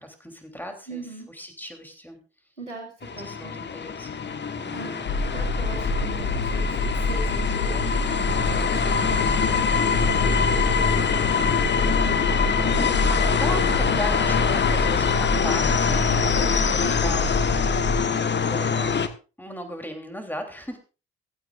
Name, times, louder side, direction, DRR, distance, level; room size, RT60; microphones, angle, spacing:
voice 1, 0.0-2.2 3.2-4.2 4.6-5.1 12.4-17.4 18.4-19.1 19.4-20.8, equal, 5° left, 5 dB, 3.3 m, -37 dB
voice 2, 0.9-1.3 2.6-3.5 4.4-4.9 5.3-10.4 16.4-17.0, right 3 dB, 90° right, -1 dB, 2.3 m, -40 dB
sound 1, 3.0-19.1, left 6 dB, 30° left, 1.3 m, -24 dB
sound 2, 5.0-18.0, left 2 dB, 55° left, 5.2 m, -27 dB
15.5 x 15.5 x 2.5 m, 0.33 s
figure-of-eight pair, 40°, 35 cm